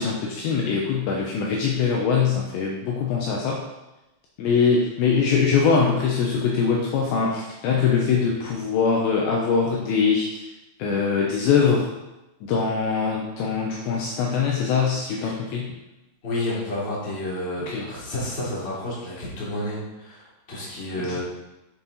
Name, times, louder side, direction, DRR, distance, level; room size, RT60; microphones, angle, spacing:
voice 1, 0.0-3.6 4.4-10.5 10.8-11.9 12.4-15.7 17.7-17.9 21.0-21.2, left 5 dB, 75° left, -2 dB, 2.9 m, -22 dB
voice 2, 16.2-21.2, left 1 dB, 15° left, -8 dB, 2.4 m, -30 dB
8.6 x 7.5 x 4.1 m, 0.99 s
omnidirectional pair, 5.7 m